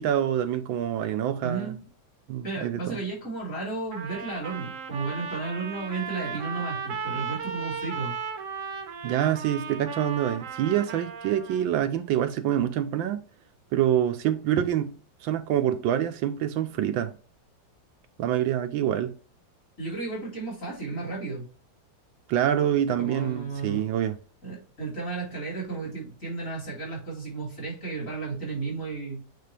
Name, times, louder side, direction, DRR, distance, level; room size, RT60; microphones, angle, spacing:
voice 1, 0.0-1.8 2.3-3.0 9.0-13.2 13.7-14.9 15.2-17.1 18.2-19.2 22.3-24.2, right 10 dB, 85° right, 1.5 m, -26 dB
voice 2, 1.4-1.8 2.4-8.1 19.8-21.5 23.0-23.8 24.4-29.2, right 3 dB, 40° left, 4.1 m, -33 dB
Trumpet, 3.9-11.6, right 6 dB, 50° right, 1.0 m, -36 dB
8.5 x 3.7 x 3.4 m
omnidirectional pair, 2.1 m